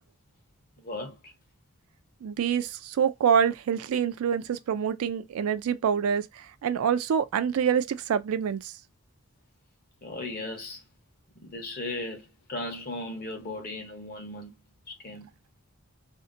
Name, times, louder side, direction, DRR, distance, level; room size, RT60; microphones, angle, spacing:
voice 1, 0.8-1.3 10.0-10.8 11.3-14.6 14.9-15.3, left 2 dB, 40° left, 0.9 m, -37 dB
voice 2, 2.2-6.3 6.6-8.7, right 7 dB, 75° right, 0.3 m, -26 dB
2.7 x 2.1 x 2.5 m
head